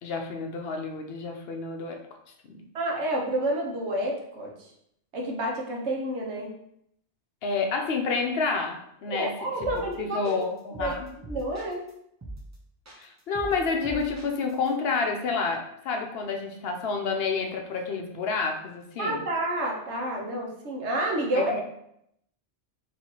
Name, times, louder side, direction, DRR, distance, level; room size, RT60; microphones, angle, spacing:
voice 1, 0.0-2.0 2.4-2.7 7.4-9.3 10.0-11.1 13.0-19.2 21.3-21.6, left 4 dB, 65° left, 3 dB, 0.8 m, -29 dB
voice 2, 2.7-4.5 5.1-6.5 9.1-10.2 10.8-11.0 11.3-11.8 19.0-21.5, right 1 dB, 80° right, -1 dB, 1.1 m, -29 dB
sound 1, 9.6-9.9 10.2-11.9 12.2-12.6 12.9-14.7, right 2 dB, 20° right, 0.6 m, -41 dB
4.4 x 3.0 x 2.9 m, 0.75 s
omnidirectional pair, 1.1 m